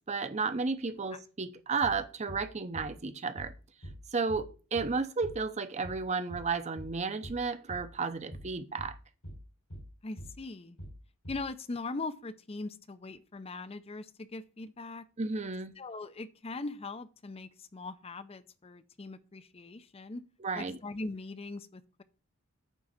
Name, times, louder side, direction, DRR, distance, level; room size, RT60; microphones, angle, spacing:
voice 1, 0.1-3.5 4.1-8.9 15.2-15.7 20.4-20.8, right 4 dB, 35° right, 0.7 m, -33 dB
sound 1, 1.8-2.0 2.3-2.5 2.7-2.9 3.4-3.6 3.8-4.0 4.3-4.5 4.7-4.9 5.2-5.4 5.8-6.0 6.3-6.5 6.8-7.0 7.2-7.4 7.7-7.9 8.3-8.5 8.8-9.0 9.2-9.4 9.7-9.9 10.2-10.4 10.8-11.0 11.2-11.4, equal, 85° left, 4.5 m, -44 dB
voice 2, 10.0-10.8 11.3-15.1 15.8-20.2 20.5-22.0, left 3 dB, 30° left, 0.6 m, -41 dB
9.1 x 3.8 x 7.1 m
head